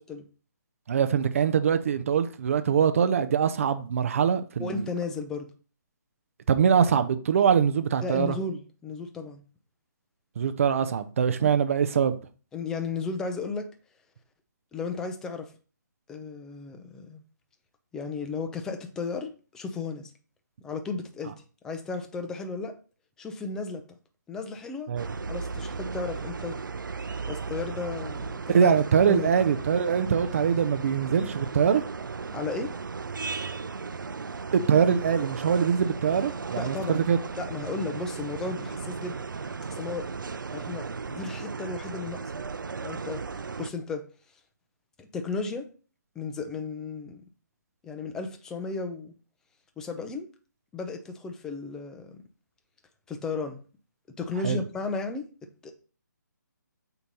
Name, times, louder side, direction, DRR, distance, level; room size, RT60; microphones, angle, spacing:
voice 1, 0.9-4.9 6.5-8.4 10.4-12.2 24.9-25.1 28.5-31.8 34.5-37.2 54.4-54.6, right 7 dB, 45° right, 0.6 m, -23 dB
voice 2, 4.6-5.5 8.0-9.4 11.4-11.5 12.5-13.7 14.7-15.5 16.1-17.2 17.9-20.1 20.6-21.3 21.6-22.8 23.2-23.8 24.3-24.9 25.3-26.6 27.3-28.7 29.1-29.3 32.3-32.7 36.6-37.0 37.4-39.2 39.7-40.1 40.5-42.3 42.8-43.2 43.6-44.1 45.0-45.7 46.2-47.2 47.8-49.1 49.8-50.3 50.7-52.2 53.1-53.6 54.2-55.3 55.6-55.7, left 4 dB, 5° left, 0.5 m, -34 dB
sound 1, 25.0-43.7, right 4 dB, 90° right, 0.5 m, -36 dB
8.0 x 2.9 x 5.3 m
hypercardioid pair, 160°, 10 cm